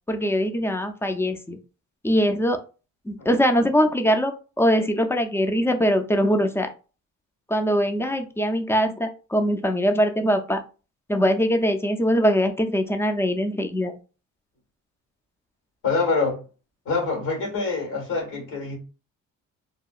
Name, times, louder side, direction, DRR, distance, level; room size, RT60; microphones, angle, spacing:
voice 1, 0.1-1.6 2.0-2.6 3.1-6.7 7.5-10.6 11.1-13.9, equal, 10° left, 0.3 m, -22 dB
voice 2, 15.8-16.4 16.8-18.8, left 4 dB, 85° left, 1.4 m, -25 dB
2.8 x 2.3 x 2.3 m
cardioid pair, 90°, 30 cm